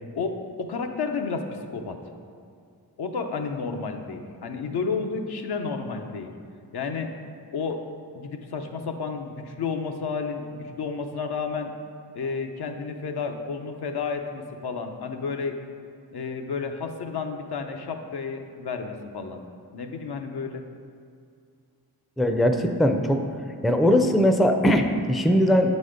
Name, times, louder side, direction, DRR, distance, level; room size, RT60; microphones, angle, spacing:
voice 1, 0.1-2.0 3.0-6.3 6.7-7.1 7.5-7.8 8.1-11.8 12.1-15.6 16.1-19.4 19.7-20.6, left 5 dB, 75° left, 4 dB, 0.7 m, -31 dB
voice 2, 22.2-23.2 23.6-25.8, equal, ahead, 5 dB, 0.4 m, -20 dB
7.6 x 4.1 x 5.0 m, 2.3 s
wide cardioid pair, 80°, 39 cm